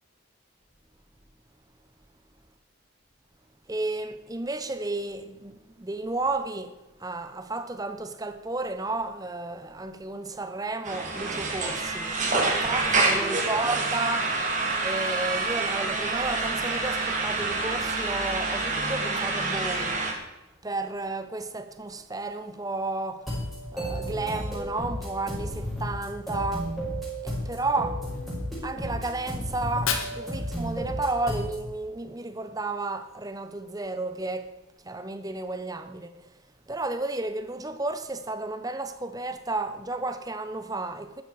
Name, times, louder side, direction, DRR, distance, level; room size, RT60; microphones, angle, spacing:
voice 1, 3.7-14.3 14.8-20.1 20.6-23.3 23.7-26.7 27.2-28.0 28.6-34.5 34.8-36.2 36.7-41.2, right 2 dB, 15° right, 0.8 m, -32 dB
sound 1, 10.8-20.1, right 3 dB, 35° right, 2.7 m, -27 dB
sound 2, 23.2-31.6, equal, ahead, 5.9 m, -33 dB
Fire, 29.6-31.6, left 6 dB, 80° left, 2.0 m, -35 dB
14.0 x 12.5 x 4.8 m
head